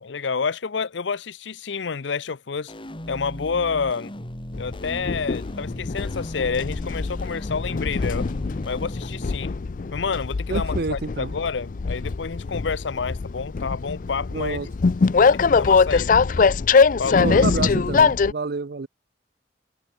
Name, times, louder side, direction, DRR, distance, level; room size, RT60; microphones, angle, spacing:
voice 1, 0.0-2.7 3.1-4.1 4.6-8.3 8.7-9.5 9.9-14.7 15.5-16.1 17.0-17.5, left 5 dB, 90° left, 0.7 m, -29 dB
sound 1, 2.7-9.2, equal, 30° left, 2.5 m, -37 dB
Train, 4.5-18.3, left 5 dB, 50° left, 0.4 m, -22 dB
voice 2, 10.5-11.3 14.3-14.7 17.2-18.9, right 4 dB, 60° right, 0.6 m, -28 dB
head